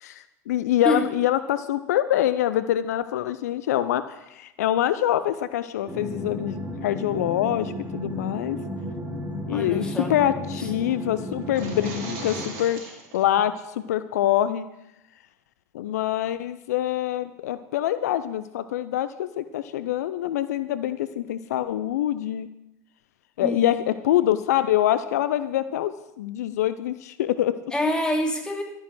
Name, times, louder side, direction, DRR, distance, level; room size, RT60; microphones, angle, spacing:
voice 1, 0.0-8.6 9.5-12.8 13.1-14.7 15.7-22.5 23.4-27.6, left 12 dB, 75° left, 13 dB, 0.5 m, -25 dB
sound 1, 5.9-12.4, left 1 dB, 15° right, 3.7 m, -34 dB
voice 2, 9.5-10.1 23.4-23.8 27.7-28.6, left 1 dB, 10° left, 2 dB, 2.9 m, -26 dB
sound 2, 11.4-13.2, right 3 dB, 65° right, 3.3 m, -38 dB
13.0 x 9.5 x 6.0 m, 0.87 s
hypercardioid pair, 75°, 9 cm